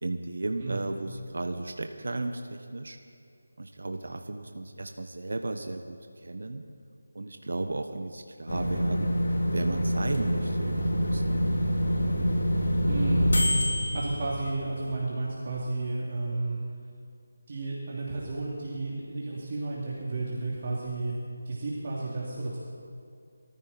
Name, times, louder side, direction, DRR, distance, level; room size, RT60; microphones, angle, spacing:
voice 1, 0.0-3.0 3.6-6.7 7.1-9.1 9.5-11.6, right 2 dB, 70° right, 6 dB, 1.2 m, -34 dB
sound 1, 8.5-14.9, equal, 65° left, 3.4 m, -26 dB
voice 2, 12.9-13.3 13.9-16.6 17.5-21.1 21.5-22.6, right 2 dB, 40° right, -5 dB, 2.7 m, -32 dB
23.5 x 14.5 x 4.3 m, 2.5 s
figure-of-eight pair, 170°, 0 cm